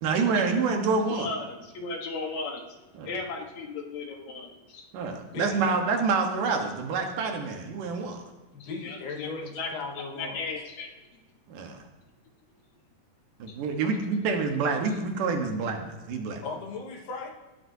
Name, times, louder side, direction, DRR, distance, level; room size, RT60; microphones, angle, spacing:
voice 1, 0.0-1.3 3.0-3.1 4.9-8.2 11.5-11.8 13.4-16.4, right 4 dB, 75° right, 3 dB, 2.9 m, -27 dB
voice 2, 1.1-2.7 3.0-4.9 8.6-9.3 9.6-10.9 13.5-13.6, left 3 dB, 60° left, 2 dB, 2.5 m, -36 dB
voice 3, 5.3-5.7 8.5-10.4 16.4-17.3, left 4 dB, 85° left, 0 dB, 3.3 m, -37 dB
19.0 x 12.5 x 2.8 m, 1.1 s
omnidirectional pair, 3.9 m